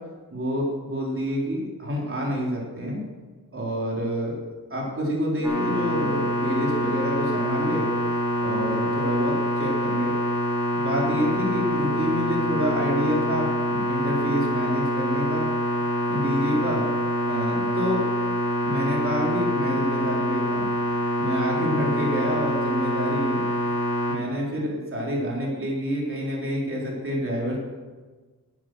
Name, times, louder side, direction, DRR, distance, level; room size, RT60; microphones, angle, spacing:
voice 1, 0.3-3.0 3.5-4.4 4.7-7.9 8.4-10.2 10.7-15.5 16.1-16.9 17.3-18.0 18.6-20.7 21.2-23.4 24.1-27.6, equal, 40° right, -3 dB, 4.0 m, -27 dB
sound 1, 5.4-24.2, equal, 5° right, 4.3 m, -25 dB
11.0 x 9.9 x 6.4 m, 1.3 s
cardioid pair, 80°, 34 cm